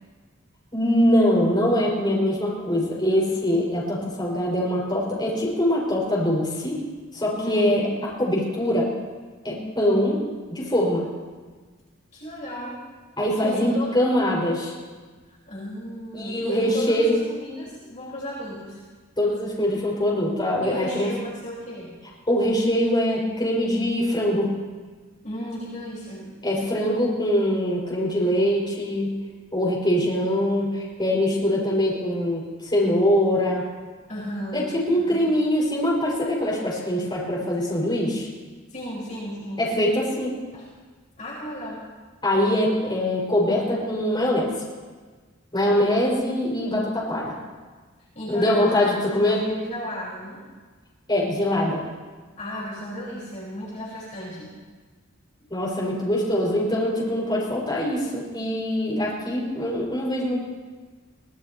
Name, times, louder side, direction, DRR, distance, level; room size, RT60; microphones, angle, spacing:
voice 1, 0.7-6.8 7.1-7.9 8.2-8.9 9.4-10.2 10.5-11.0 13.2-14.7 16.1-17.1 19.2-21.1 22.3-24.5 26.4-29.1 29.5-33.6 34.5-38.3 39.6-40.3 42.2-44.5 45.5-47.4 48.3-49.4 51.1-51.8 55.5-60.4, left 1 dB, 20° left, -5 dB, 5.7 m, -23 dB
voice 2, 7.3-7.8 12.1-12.8 13.3-13.9 15.3-18.8 20.6-21.9 25.2-26.3 31.4-31.7 34.1-35.2 38.7-39.7 40.5-40.7 41.2-41.9 45.6-46.1 46.4-46.5 48.1-48.8 49.3-50.4 52.4-54.5, equal, 35° left, -6 dB, 5.0 m, -34 dB
24.0 x 18.5 x 3.0 m, 1.4 s
head